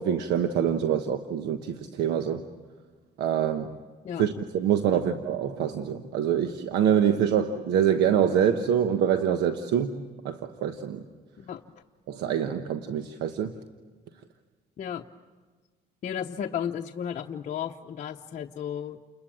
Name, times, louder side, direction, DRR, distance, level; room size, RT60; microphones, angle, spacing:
voice 1, 0.0-2.4 3.2-3.7 4.2-11.0 12.1-13.5, right 9 dB, 80° right, 7 dB, 1.2 m, -25 dB
voice 2, 16.0-19.0, left 9 dB, 45° left, 1 dB, 0.9 m, -34 dB
29.5 x 21.0 x 8.8 m, 1.4 s
cardioid pair, 110°, 17 cm